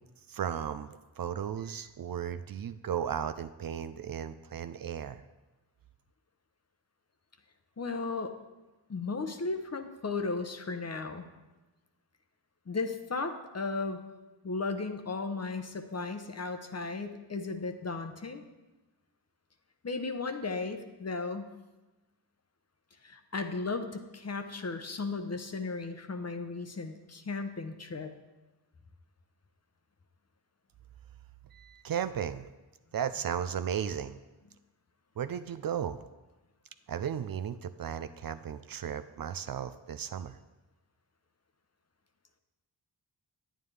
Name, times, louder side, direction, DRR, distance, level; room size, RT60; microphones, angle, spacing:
voice 1, 0.3-5.2 31.5-32.4 32.9-34.2 35.2-36.0 36.9-40.4, right 8 dB, 50° right, 11 dB, 0.5 m, -35 dB
voice 2, 7.8-8.3 8.9-11.2 12.7-14.0 14.4-18.4 19.8-21.5 23.0-28.1, left 3 dB, 35° left, 7 dB, 0.8 m, -35 dB
9.1 x 9.0 x 3.3 m, 1.1 s
cardioid pair, 45°, 44 cm